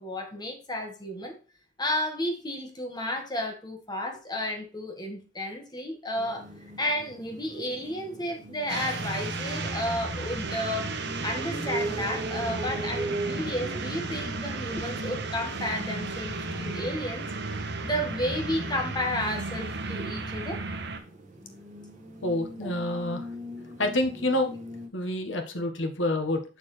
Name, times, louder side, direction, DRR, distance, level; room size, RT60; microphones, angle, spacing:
voice 1, 0.0-1.4 1.8-6.5 6.8-10.9 11.2-17.3 17.8-20.6 22.6-22.7, left 1 dB, 20° left, 3 dB, 1.6 m, -32 dB
sound 1, 6.2-24.9, right 1 dB, 40° right, 1.7 m, -40 dB
sound 2, 8.7-21.0, right 3 dB, 60° right, 1.2 m, -34 dB
voice 2, 22.2-23.3 23.8-24.5 24.9-26.4, left 1 dB, 70° left, 5 dB, 1.5 m, -28 dB
6.9 x 6.8 x 3.3 m, 0.36 s
head